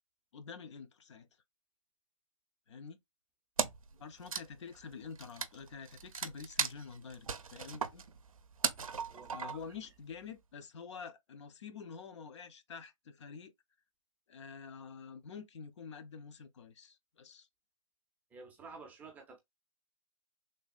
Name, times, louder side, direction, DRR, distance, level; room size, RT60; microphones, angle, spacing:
voice 1, 0.3-1.3 2.7-3.0 4.0-8.0 9.3-13.5 14.3-17.5, left 6 dB, 60° left, 0.5 m, -48 dB
Wood, 3.6-3.9 4.2-9.8, right 6 dB, 90° right, 0.4 m, -37 dB
voice 2, 9.1-9.6 18.3-19.4, right 4 dB, 10° right, 0.4 m, -51 dB
3.3 x 2.2 x 2.3 m
hypercardioid pair, 135°, 17 cm